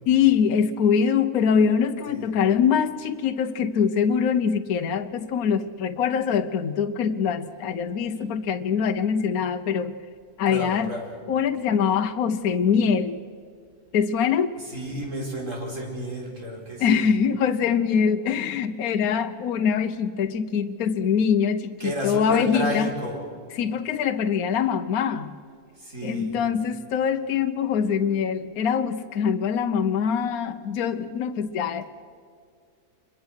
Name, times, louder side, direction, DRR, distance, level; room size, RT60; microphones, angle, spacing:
voice 1, 0.1-10.0 10.4-10.9 11.3-13.2 13.9-14.6 16.8-22.9 23.5-25.4 26.0-31.8, left 7 dB, 70° left, 8 dB, 1.3 m, -23 dB
voice 2, 10.5-11.2 14.6-17.1 21.8-23.2 25.7-26.4, equal, 55° right, 0 dB, 4.8 m, -31 dB
26.0 x 22.5 x 6.4 m, 2.2 s
omnidirectional pair, 1.6 m